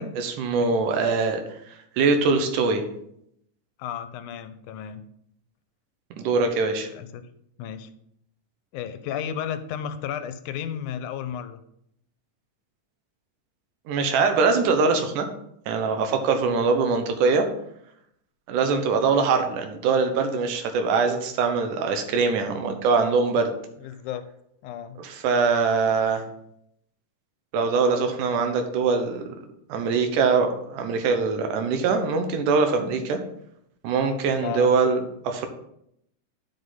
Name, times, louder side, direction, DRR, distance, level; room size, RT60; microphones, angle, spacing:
voice 1, 0.0-1.4 2.0-2.8 6.2-6.9 13.9-15.3 15.7-17.5 18.5-23.5 25.0-26.3 27.5-29.2 29.7-33.2 33.8-35.5, right 4 dB, 90° right, 6 dB, 2.4 m, -23 dB
voice 2, 3.8-5.0 6.9-7.2 7.6-7.9 8.7-11.6 23.8-24.3 24.6-25.0 34.4-34.7, left 9 dB, 85° left, 10 dB, 2.1 m, -33 dB
10.0 x 5.2 x 4.0 m, 0.73 s
omnidirectional pair, 3.5 m